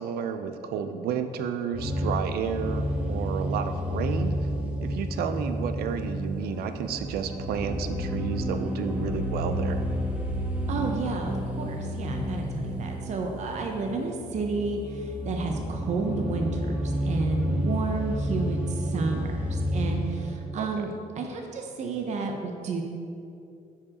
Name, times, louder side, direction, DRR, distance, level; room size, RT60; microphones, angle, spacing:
voice 1, 0.0-4.3 4.8-9.8 20.6-20.8, right 7 dB, 85° right, 9 dB, 0.5 m, -31 dB
sound 1, 1.7-20.3, equal, 10° right, 0.8 m, -30 dB
voice 2, 10.7-20.9 21.2-22.8, right 4 dB, 50° right, 2 dB, 0.7 m, -31 dB
9.4 x 4.9 x 2.9 m, 2.6 s
cardioid pair, 130°, 16 cm